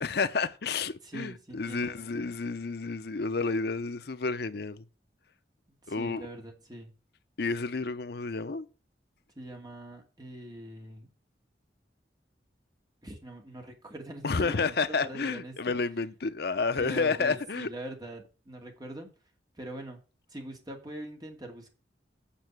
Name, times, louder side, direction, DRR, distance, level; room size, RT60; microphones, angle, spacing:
voice 1, 0.0-4.8 5.9-6.3 7.4-8.7 14.2-17.7, left 4 dB, 60° left, 0.7 m, -30 dB
voice 2, 1.0-1.9 5.7-6.9 9.4-11.1 13.0-15.7 16.8-19.1 19.6-20.0 20.3-21.7, right 1 dB, 25° right, 2.4 m, -43 dB
8.8 x 5.6 x 6.0 m
head